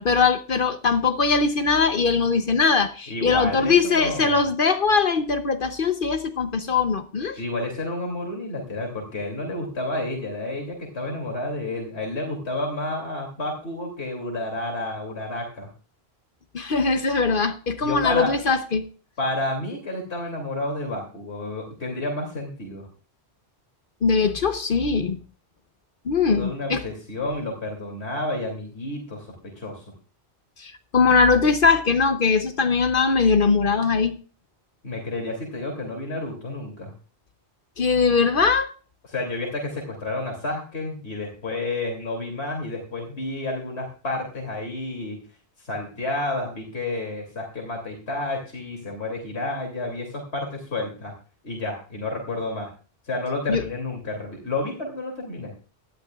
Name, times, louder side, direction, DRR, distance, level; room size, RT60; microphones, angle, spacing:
voice 1, 0.0-7.4 16.5-18.9 24.0-25.2 26.0-26.8 30.6-34.2 37.8-38.7 53.5-53.6, left 5 dB, 55° left, 1.0 m, -21 dB
voice 2, 3.1-4.5 7.4-15.7 17.8-18.4 19.2-22.9 26.3-29.8 34.8-36.9 39.1-45.2 45.6-51.1 51.4-52.7 53.0-55.5, left 2 dB, 80° left, 3.1 m, -30 dB
18.0 x 12.0 x 2.4 m
omnidirectional pair, 1.1 m